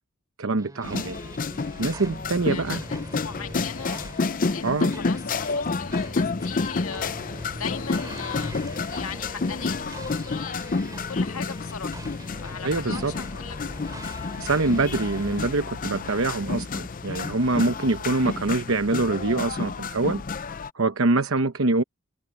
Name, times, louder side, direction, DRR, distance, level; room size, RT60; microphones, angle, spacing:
voice 1, 0.4-1.2 1.8-2.8 4.6-4.9 12.6-13.1 14.4-20.2 20.7-21.8, right 3 dB, 70° right, 0.9 m, -24 dB
sound 1, 0.6-15.5, right 1 dB, 15° right, 3.6 m, -42 dB
sound 2, 0.8-20.7, left 4 dB, 40° left, 0.6 m, -30 dB
voice 2, 2.3-12.1 12.4-13.8, left 6 dB, 85° left, 2.0 m, -39 dB
head